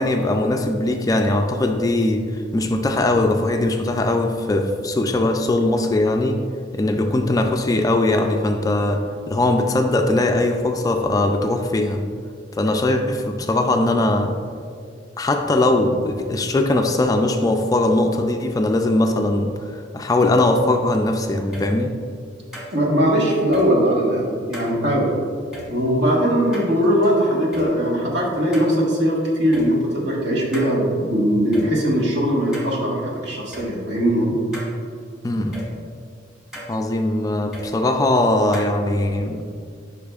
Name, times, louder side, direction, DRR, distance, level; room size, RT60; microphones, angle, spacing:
voice 1, 0.0-2.3 2.5-6.4 6.7-12.0 12.5-14.4 15.2-21.9 35.2-35.7 36.7-39.4, left 2 dB, 20° left, 4 dB, 0.3 m, -20 dB
sound 1, 21.5-21.7 22.5-22.7 23.5-23.7 24.5-24.7 25.5-25.7 26.5-27.1 27.5-27.7 28.5-28.7 29.5-29.7 30.5-30.7 31.5-31.7 32.5-32.7 33.5-33.7 34.5-34.7 35.5-35.7 36.5-36.7 37.5-37.7 38.5-38.7, equal, 5° right, 1.3 m, -35 dB
voice 2, 22.7-25.1 25.7-34.3, equal, 60° right, -3 dB, 1.4 m, -20 dB
8.4 x 5.6 x 2.4 m, 2.2 s
head